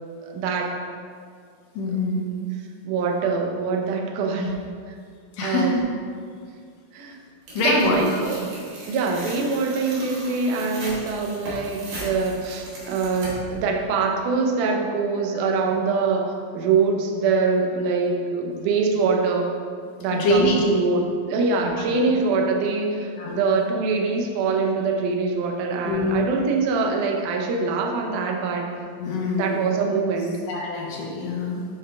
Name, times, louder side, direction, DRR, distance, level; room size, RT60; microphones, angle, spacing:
voice 1, 0.2-0.7 2.8-4.5 4.9-5.0 5.4-5.7 6.9-7.2 7.6-8.4 8.9-19.5 20.0-28.7 29.4-30.4, right 4 dB, 75° right, 1 dB, 2.0 m, -24 dB
voice 2, 1.7-2.2 4.4-4.5 5.3-5.8 7.5-8.3 15.3-15.5 20.1-20.6 21.6-21.7 23.2-23.4 25.8-26.2 29.0-29.6 30.5-31.7, left 2 dB, 80° left, -2 dB, 1.5 m, -24 dB
Tearing, 7.5-13.6, right 1 dB, 60° right, 2.4 m, -38 dB
5.8 x 4.9 x 3.3 m, 2.1 s
omnidirectional pair, 3.8 m